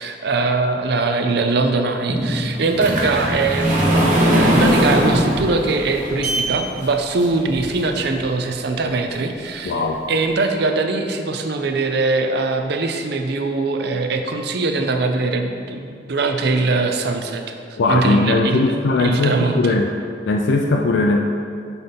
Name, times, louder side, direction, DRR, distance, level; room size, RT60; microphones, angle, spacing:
voice 1, 0.0-3.9 4.3-9.8 10.1-17.4 17.7-18.7 19.0-19.8, right 3 dB, 60° right, 5 dB, 0.5 m, -21 dB
sound 1, 2.1-8.2 8.8-8.9 9.4-9.5 9.8-9.9, equal, 45° right, 1.1 m, -20 dB
voice 2, 9.6-10.0 17.8-19.9 20.3-21.2, left 3 dB, 65° left, 2 dB, 0.4 m, -19 dB
5.8 x 4.0 x 5.2 m, 2.3 s
head